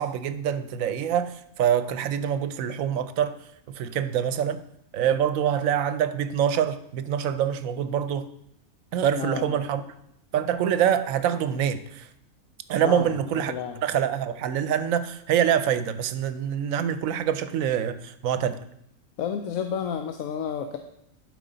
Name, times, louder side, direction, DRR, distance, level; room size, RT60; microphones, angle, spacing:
voice 1, 0.0-3.4 3.7-4.6 4.9-8.3 8.9-9.8 10.3-12.1 12.7-13.5 13.8-18.6, right 9 dB, 75° right, 1.0 m, -25 dB
voice 2, 9.2-9.6 12.8-13.8 19.2-20.8, left 7 dB, 75° left, 1.0 m, -31 dB
11.5 x 5.0 x 3.9 m
omnidirectional pair, 1.5 m